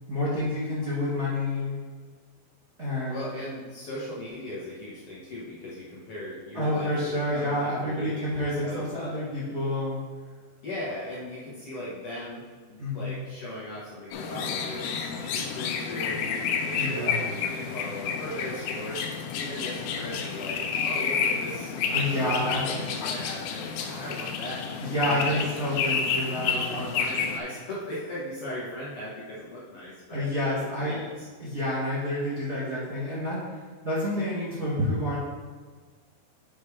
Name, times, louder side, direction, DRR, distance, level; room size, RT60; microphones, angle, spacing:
voice 1, 0.1-1.8 2.8-3.3 6.5-10.0 12.8-13.2 16.8-17.2 21.9-22.8 24.8-27.0 30.1-31.0 31.4-33.6 33.8-35.2, left 1 dB, 35° right, -9 dB, 1.0 m, -29 dB
voice 2, 3.1-8.9 10.6-19.1 19.4-25.4 26.5-30.3 30.8-31.3, left 1 dB, 55° left, -8 dB, 1.6 m, -38 dB
sound 1, 14.1-27.4, left 6 dB, 85° left, 2.4 m, -30 dB
7.2 x 4.3 x 4.8 m, 1.5 s
omnidirectional pair, 4.5 m